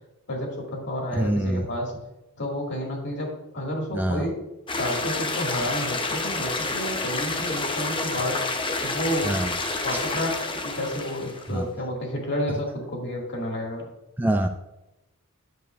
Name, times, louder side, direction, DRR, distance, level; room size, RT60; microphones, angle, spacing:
voice 1, 0.3-1.9 2.4-4.3 4.8-8.4 8.8-9.3 9.8-13.9, left 1 dB, 55° left, -1 dB, 2.1 m, -30 dB
voice 2, 1.2-1.7 3.9-4.3 9.2-9.5 11.5-11.7 14.2-14.5, right 1 dB, 10° right, 6 dB, 0.3 m, -24 dB
sound 1, 4.7-11.5, left 3 dB, 25° left, 0.8 m, -29 dB
9.9 x 7.1 x 2.5 m, 0.95 s
head